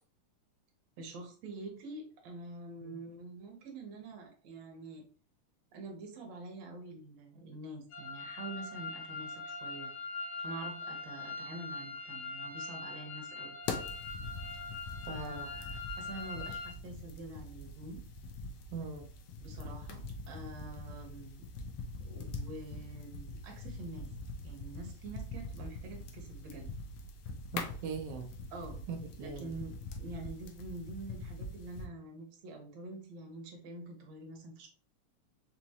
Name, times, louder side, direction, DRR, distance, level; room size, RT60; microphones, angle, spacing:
voice 1, 1.0-5.1 5.7-9.9 10.4-13.6 15.1-15.7 16.0-18.0 19.4-21.5 22.0-24.1 24.4-26.7 28.5-28.8 29.2-34.7, right 2 dB, 70° right, 2 dB, 2.1 m, -46 dB
sound 1, 7.9-16.7, left 4 dB, 65° left, 2.3 m, -42 dB
sound 2, 13.6-31.9, left 3 dB, 85° left, 1.3 m, -43 dB
voice 2, 15.1-15.5 18.7-19.1 27.5-28.3 28.9-29.5, right 5 dB, 85° right, 4 dB, 1.3 m, -41 dB
5.3 x 2.9 x 2.8 m, 0.41 s
omnidirectional pair, 3.4 m